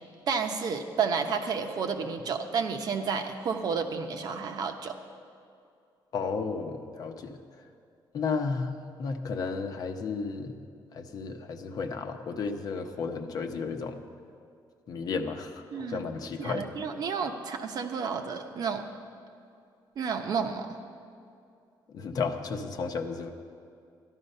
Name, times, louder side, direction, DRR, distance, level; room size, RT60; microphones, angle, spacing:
voice 1, 0.3-4.9 15.7-16.0 16.4-18.8 20.0-20.8, right 5 dB, 55° right, 5 dB, 1.0 m, -31 dB
voice 2, 6.1-7.4 8.1-10.6 10.9-14.0 14.9-16.7 21.9-23.3, left 4 dB, 50° left, 6 dB, 0.9 m, -33 dB
13.0 x 11.5 x 5.5 m, 2.5 s
cardioid pair, 140°, 8 cm